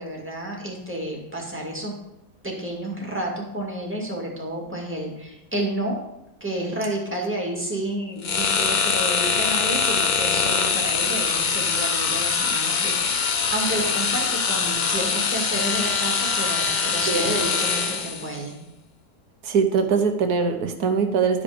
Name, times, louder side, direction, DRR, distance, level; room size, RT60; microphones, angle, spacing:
voice 1, 0.0-2.0 2.4-6.0 6.4-18.6, right 1 dB, 5° right, -2 dB, 2.1 m, -30 dB
sound 1, 8.2-18.3, left 5 dB, 60° left, 0.4 m, -23 dB
voice 2, 17.1-17.4 19.4-21.4, right 5 dB, 70° right, 6 dB, 1.5 m, -22 dB
12.0 x 5.3 x 5.1 m, 0.87 s
omnidirectional pair, 1.7 m